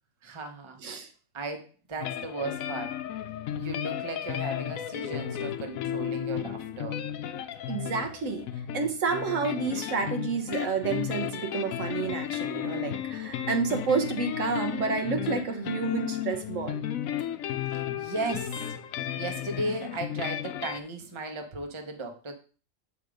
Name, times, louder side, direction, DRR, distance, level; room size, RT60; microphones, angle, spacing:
voice 1, 0.2-0.8 1.3-3.0 3.6-7.0 17.7-18.6 19.2-22.3, right 2 dB, 25° right, 4 dB, 0.9 m, -36 dB
sound 1, 2.0-20.8, left 10 dB, 90° left, 1.0 m, -34 dB
voice 2, 7.7-8.4 8.7-16.8, right 5 dB, 70° right, 5 dB, 1.3 m, -30 dB
8.0 x 3.6 x 5.0 m, 0.37 s
omnidirectional pair, 1.4 m